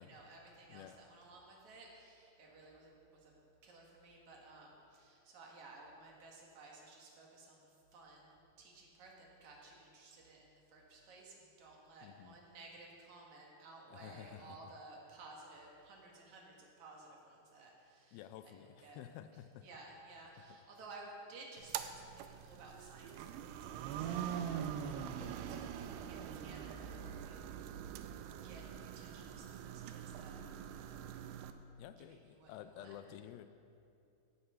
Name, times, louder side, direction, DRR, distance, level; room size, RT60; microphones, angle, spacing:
voice 1, 0.0-3.4 3.6-19.0 19.6-23.3 23.6-25.7 26.0-27.8 28.4-31.2 32.3-32.9, right 2 dB, 55° right, -2 dB, 2.7 m, -56 dB
voice 2, 12.0-12.4 13.9-14.7 18.1-19.7 20.4-20.6 25.0-25.4 31.8-33.5, left 11 dB, 85° left, 11 dB, 2.2 m, -52 dB
sound 1, 21.6-31.5, right 9 dB, 90° right, 2.7 m, -43 dB
16.0 x 7.9 x 5.6 m, 2.6 s
omnidirectional pair, 4.7 m